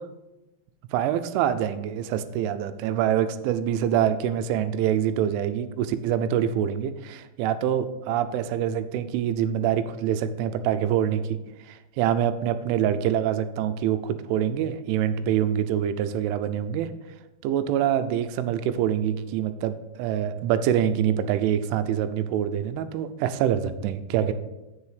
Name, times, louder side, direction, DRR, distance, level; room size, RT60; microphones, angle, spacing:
voice 1, 0.9-11.4 11.7-16.9 17.4-24.3, right 10 dB, 90° right, 11 dB, 3.1 m, -25 dB
8.3 x 7.0 x 5.0 m, 1.0 s
omnidirectional pair, 5.4 m